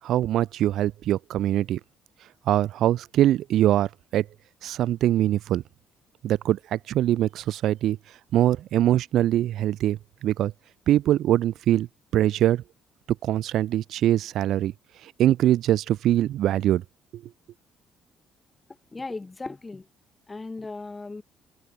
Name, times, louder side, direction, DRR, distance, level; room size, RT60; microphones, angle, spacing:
voice 1, 0.0-1.8 2.5-4.3 4.6-5.6 6.2-8.0 8.3-10.5 10.9-11.9 12.1-12.6 13.2-14.7 15.0-16.8 17.1-17.2, right 12 dB, 70° right, 0.7 m, -23 dB
voice 2, 18.9-19.9 20.3-21.2, left 3 dB, 20° left, 2.0 m, -36 dB
cardioid pair, 85°, 0 cm